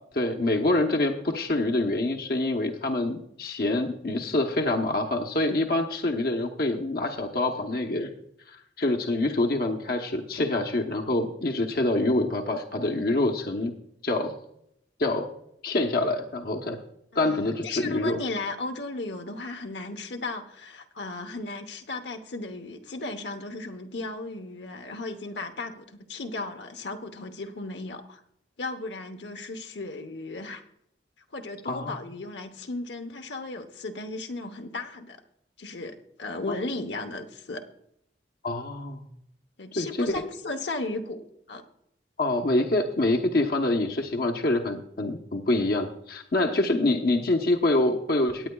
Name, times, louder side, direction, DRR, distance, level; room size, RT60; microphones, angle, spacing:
voice 1, 0.1-8.1 8.5-13.7 14.0-14.3 15.0-15.3 15.6-16.8 17.1-18.2 31.6-31.9 38.4-39.0 39.8-40.2 42.2-48.5, left 2 dB, 55° left, 3 dB, 0.9 m, -26 dB
voice 2, 17.1-28.2 28.6-30.6 31.3-35.2 35.6-37.6 39.6-41.2 41.5-41.6, left 2 dB, 85° left, 5 dB, 1.0 m, -35 dB
18.0 x 9.0 x 2.3 m, 0.74 s
head